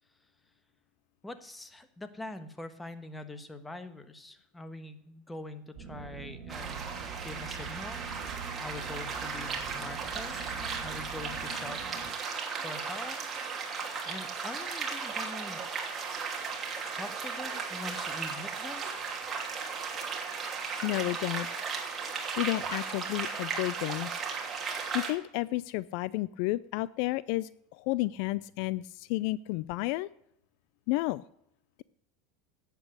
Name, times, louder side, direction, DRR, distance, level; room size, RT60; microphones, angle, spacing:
voice 1, 1.2-6.9 7.2-8.0 8.6-11.8 12.3-13.2 13.6-15.6 17.0-18.9, left 2 dB, 10° left, 10 dB, 1.3 m, -44 dB
sound 1, 5.7-12.1, right 6 dB, 45° right, 3.3 m, -44 dB
sound 2, 6.5-25.1, right 5 dB, 25° right, 2.8 m, -36 dB
sound 3, 8.3-11.7 12.1-16.1 16.7-19.5, left 2 dB, 45° left, 5.9 m, -58 dB
voice 2, 20.8-21.5 22.4-24.1 24.9-30.1 30.9-31.2, left 19 dB, 65° left, 19 dB, 0.3 m, -31 dB
11.0 x 8.3 x 6.5 m, 0.75 s
supercardioid pair, 120°, 0 cm